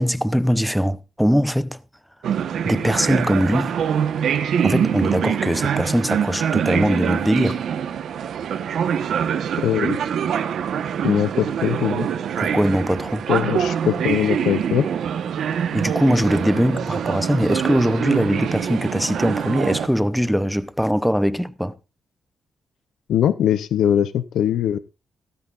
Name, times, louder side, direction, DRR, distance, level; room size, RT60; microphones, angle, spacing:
voice 1, 0.0-1.8 2.6-3.8 4.6-7.6 12.4-13.3 15.7-21.8, equal, ahead, 0.7 m, -21 dB
sound 1, 2.2-19.9, right 8 dB, 75° right, 1.1 m, -24 dB
voice 2, 9.6-10.0 11.0-12.1 13.3-14.9 23.1-24.8, left 10 dB, 90° left, 0.6 m, -21 dB
16.0 x 13.5 x 2.5 m
cardioid pair, 115°, 0 cm